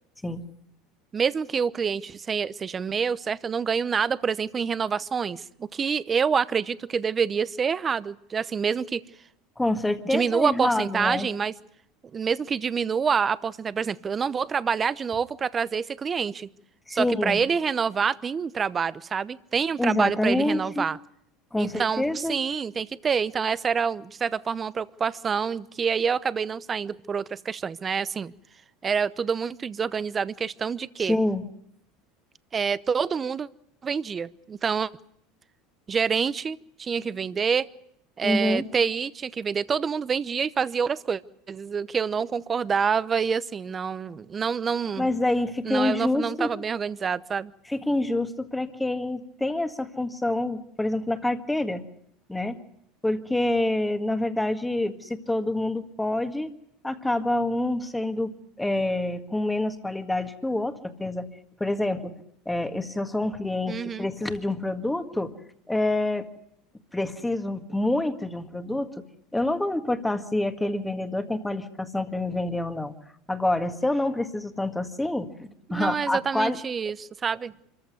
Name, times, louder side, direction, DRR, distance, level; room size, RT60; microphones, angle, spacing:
voice 1, 1.1-9.0 10.1-11.5 12.1-16.5 16.9-21.0 21.6-28.3 28.8-31.2 32.5-33.5 33.8-34.9 35.9-37.7 38.2-41.2 41.5-45.1 45.6-47.5 63.7-64.1 75.7-77.5, right 6 dB, 25° right, 17 dB, 0.8 m, -27 dB
voice 2, 9.6-11.3 16.9-17.4 19.8-20.9 21.5-22.4 31.0-31.5 38.2-38.6 45.0-46.5 47.6-51.8 52.3-52.6 53.0-56.5 56.8-61.3 61.6-62.1 62.5-65.3 65.7-66.3 66.9-69.0 69.3-72.9 73.3-76.6, left 1 dB, 5° left, 8 dB, 1.8 m, -27 dB
25.5 x 14.5 x 9.5 m, 0.72 s
supercardioid pair, 110°, 0 cm